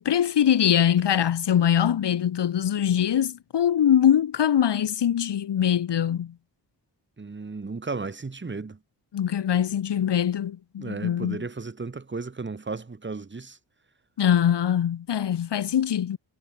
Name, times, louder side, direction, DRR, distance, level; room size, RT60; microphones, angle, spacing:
voice 1, 0.0-6.4 9.1-11.4 14.2-16.2, left 9 dB, 75° left, 2.3 m, -23 dB
voice 2, 7.2-8.8 10.8-13.6, right 4 dB, 25° right, 6.9 m, -34 dB
wide cardioid pair, 160°, 42 cm